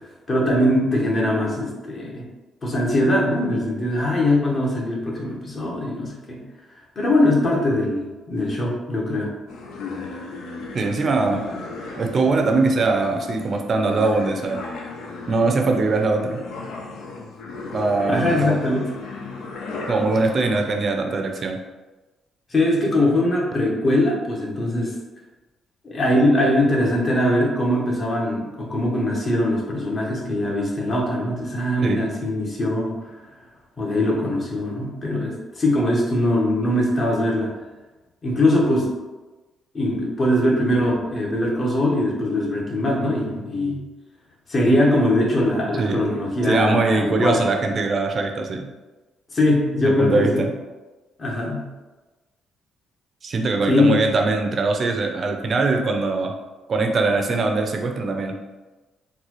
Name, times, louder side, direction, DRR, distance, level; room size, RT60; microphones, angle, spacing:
voice 1, 0.3-2.2 2.6-6.4 7.0-9.3 18.1-18.9 22.5-24.9 25.8-33.1 33.8-37.5 38.2-38.9 39.7-43.7 44.5-47.4 49.3-50.5 51.2-51.7 53.7-54.0, left 1 dB, 35° left, -2 dB, 1.0 m, -21 dB
sound 1, 9.5-21.4, left 3 dB, 85° left, 0.5 m, -35 dB
voice 2, 10.7-11.5 12.0-14.6 15.3-16.4 17.7-18.7 19.9-21.6 31.8-32.1 43.6-43.9 45.8-46.0 46.5-48.7 49.8-50.5 53.2-56.3 56.7-58.4, right 3 dB, 45° right, 3 dB, 0.5 m, -22 dB
3.9 x 2.3 x 3.0 m, 1.2 s
cardioid pair, 90°, 0 cm